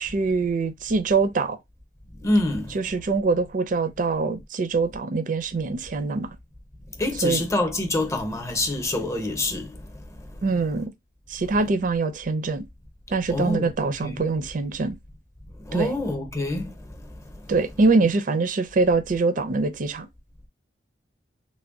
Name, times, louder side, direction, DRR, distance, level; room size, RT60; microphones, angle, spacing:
voice 1, 0.0-1.6 2.7-6.3 7.2-7.4 10.4-10.9 11.3-12.6 13.1-15.0 15.7-15.9 17.5-20.1, right 3 dB, 50° right, 0.4 m, -24 dB
voice 2, 2.2-2.7 7.0-9.7 13.3-13.7 14.0-14.2 15.7-16.7, left 2 dB, 15° left, 0.8 m, -25 dB
3.3 x 2.2 x 3.6 m
head